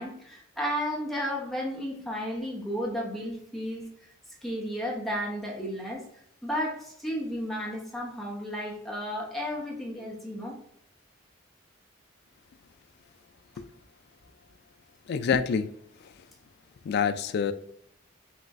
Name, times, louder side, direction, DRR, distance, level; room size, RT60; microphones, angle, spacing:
voice 1, 0.0-3.9 4.4-6.1 6.4-10.6, equal, ahead, -4 dB, 1.0 m, -33 dB
voice 2, 15.1-15.7 16.9-17.5, left 6 dB, 55° left, 11 dB, 0.3 m, -26 dB
5.7 x 2.5 x 2.5 m, 0.70 s
head